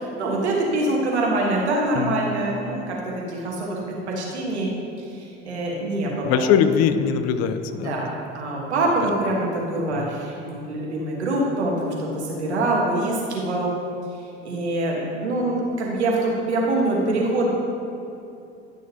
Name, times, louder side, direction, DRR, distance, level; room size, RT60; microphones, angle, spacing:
voice 1, 0.0-4.7 5.1-6.4 7.8-8.1 8.3-13.7 14.4-17.5, right 2 dB, 85° right, -2 dB, 1.5 m, -24 dB
voice 2, 1.9-2.3 6.2-8.0 10.0-10.1, left 7 dB, 50° left, 10 dB, 0.5 m, -21 dB
11.0 x 6.4 x 2.9 m, 2.6 s
hypercardioid pair, 70°, 33 cm